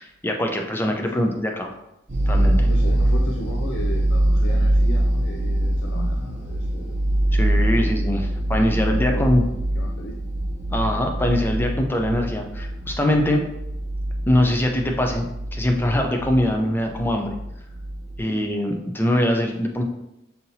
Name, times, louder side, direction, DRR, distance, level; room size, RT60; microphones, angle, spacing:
voice 1, 0.0-1.7 2.3-2.6 7.3-9.5 10.7-13.5 14.3-17.3 18.2-19.8, left 1 dB, 10° left, 2 dB, 0.4 m, -22 dB
voice 2, 1.0-1.4 2.6-7.0 7.7-7.9 8.7-9.5 9.7-10.2 18.3-18.5, left 2 dB, 90° left, 1 dB, 0.4 m, -35 dB
sound 1, 2.1-18.2, right 1 dB, 40° right, 0.6 m, -23 dB
5.5 x 2.8 x 2.7 m, 0.86 s
head